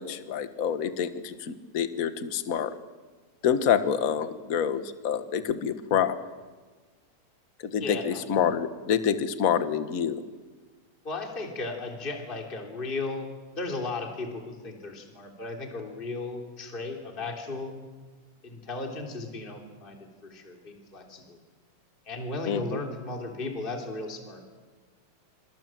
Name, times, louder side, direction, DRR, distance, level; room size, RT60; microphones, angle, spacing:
voice 1, 0.0-2.7 3.4-6.2 7.6-10.2 22.4-22.8, left 8 dB, 45° left, 10 dB, 1.2 m, -27 dB
voice 2, 7.8-8.2 11.0-13.3 13.5-17.7 18.4-21.4 22.0-24.4, left 3 dB, 15° left, 2 dB, 3.3 m, -35 dB
27.5 x 26.0 x 7.7 m, 1.4 s
omnidirectional pair, 3.4 m